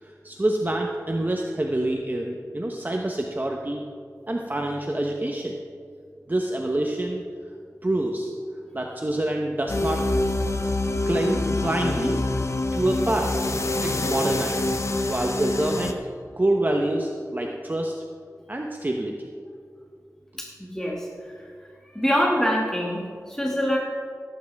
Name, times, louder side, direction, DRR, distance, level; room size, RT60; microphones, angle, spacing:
voice 1, 0.0-3.9 4.3-5.6 6.3-7.2 7.8-8.3 8.7-10.0 11.1-12.2 12.7-13.5 13.8-16.0 16.3-17.9 18.5-19.3, right 1 dB, 30° right, 1 dB, 1.0 m, -26 dB
sound 1, 9.7-15.9, left 2 dB, 50° left, 0.9 m, -26 dB
voice 2, 20.4-21.4 21.9-23.8, equal, 10° left, -3 dB, 2.1 m, -25 dB
17.0 x 9.7 x 3.5 m, 2.2 s
wide cardioid pair, 45°, 6 cm